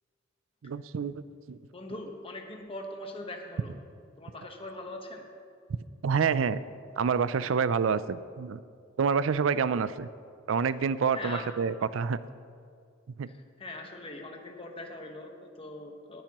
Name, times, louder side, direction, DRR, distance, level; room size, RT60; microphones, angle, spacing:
voice 1, 0.6-1.7 6.0-6.6 7.0-8.6 9.0-10.1 10.5-12.2 13.2-13.3, right 6 dB, 80° right, 16 dB, 0.4 m, -28 dB
voice 2, 1.7-3.7 4.2-5.3 11.1-11.5 13.3-16.2, left 2 dB, 30° left, 3 dB, 1.2 m, -41 dB
19.0 x 10.5 x 3.0 m, 2.3 s
head